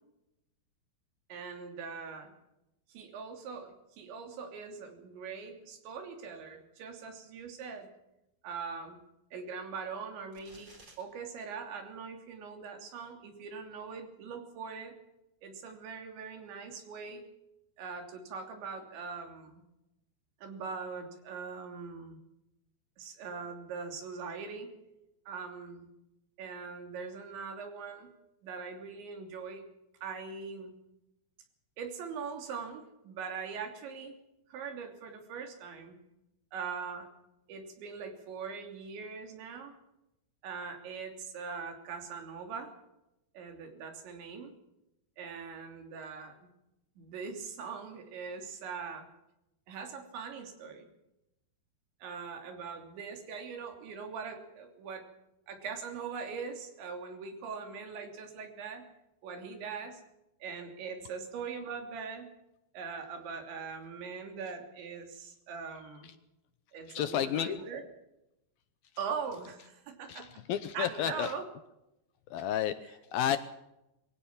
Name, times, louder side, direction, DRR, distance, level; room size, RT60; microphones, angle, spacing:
voice 1, 1.3-2.3 2.9-7.9 8.4-9.0 9.3-10.7 11.0-14.9 15.4-17.2 17.8-19.6 20.4-22.2 23.0-24.7 25.3-25.9 26.4-28.1 28.4-29.6 30.0-30.8 31.8-34.2 34.5-36.0 36.5-37.1 37.5-39.7 40.4-42.7 43.4-44.5 45.2-46.5 47.0-49.1 49.7-50.9 52.0-55.1 55.5-58.9 59.2-60.0 60.4-62.3 62.7-66.1 66.7-67.8 69.0-70.3 70.7-71.5, right 5 dB, 90° right, 5 dB, 5.4 m, -41 dB
sound 1, 10.3-11.0, right 2 dB, 25° right, 4.4 m, -55 dB
voice 2, 66.9-67.6 70.1-71.3 72.3-73.4, left 10 dB, 75° left, 12 dB, 2.3 m, -31 dB
23.0 x 16.5 x 7.3 m, 0.89 s
omnidirectional pair, 5.0 m